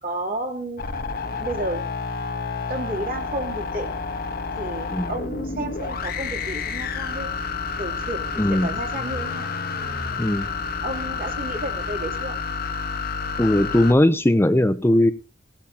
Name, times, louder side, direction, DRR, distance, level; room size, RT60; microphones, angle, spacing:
voice 1, 0.0-0.8 1.4-1.8 2.7-3.9 4.5-7.3 7.8-9.5 10.8-12.4, right 1 dB, 50° right, 2 dB, 3.1 m, -31 dB
sound 1, 0.8-13.9, left 4 dB, 55° left, 1.2 m, -29 dB
voice 2, 8.4-8.7 10.2-10.5 13.4-15.1, left 1 dB, 15° left, 10 dB, 0.6 m, -19 dB
17.5 x 13.5 x 2.9 m, 0.31 s
head